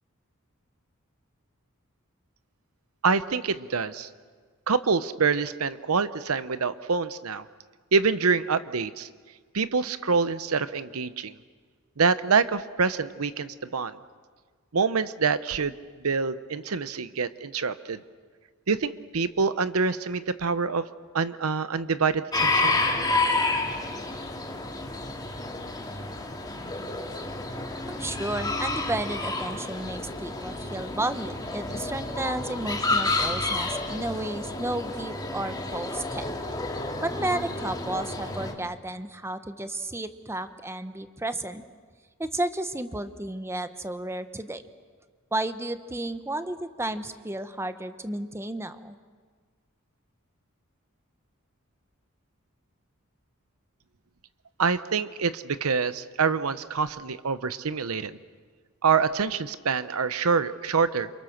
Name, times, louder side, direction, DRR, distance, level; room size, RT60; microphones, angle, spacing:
voice 1, 3.0-4.1 4.7-7.4 7.9-9.1 9.5-11.3 12.0-14.0 14.7-15.7 16.0-18.0 18.7-20.9 21.1-22.8 54.6-58.2 58.8-61.1, right 5 dB, 80° right, 14 dB, 0.8 m, -26 dB
sound 1, 22.3-38.5, left 2 dB, 20° left, 2.4 m, -30 dB
voice 2, 27.9-36.2 37.0-41.6 42.2-44.6 45.3-49.0, right 1 dB, 10° right, 10 dB, 1.0 m, -32 dB
29.0 x 28.0 x 6.6 m, 1.5 s
head